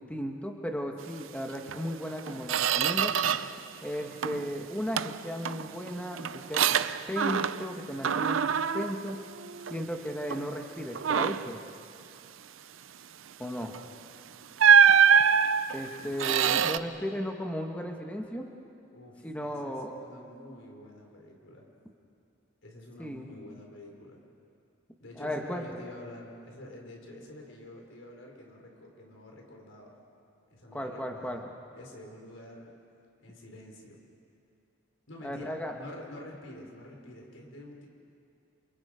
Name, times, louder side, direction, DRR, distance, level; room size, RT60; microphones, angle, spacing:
voice 1, 0.0-3.1 3.8-6.6 7.1-8.4 8.7-9.2 9.7-11.6 13.4-13.7 15.7-18.5 19.2-19.9 23.0-23.3 25.2-25.6 30.7-31.4 35.2-35.7, equal, 5° left, 2 dB, 1.6 m, -35 dB
Squeak, 1.7-1.8 2.2-3.6 3.9-4.5 5.0-7.8 8.0-9.9 10.3-10.5 10.9-11.6 13.7-13.9 14.6-16.8, right 7 dB, 90° right, 0.6 m, -24 dB
voice 2, 18.9-21.7 22.6-24.2 25.0-30.0 30.5-31.4 31.7-32.7 33.2-34.0 35.1-37.9, left 1 dB, 85° left, 0 dB, 4.5 m, -47 dB
29.5 x 28.0 x 5.1 m, 2.5 s
head